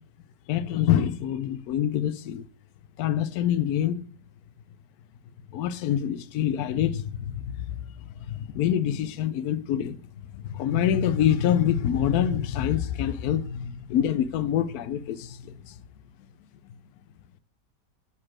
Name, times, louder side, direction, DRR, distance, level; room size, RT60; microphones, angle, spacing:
voice 1, 0.5-2.5 3.0-4.0 5.5-7.8 8.3-10.0 10.3-15.8, left 10 dB, 70° left, 1.0 m, -26 dB
6.7 x 4.3 x 5.9 m
omnidirectional pair, 1.8 m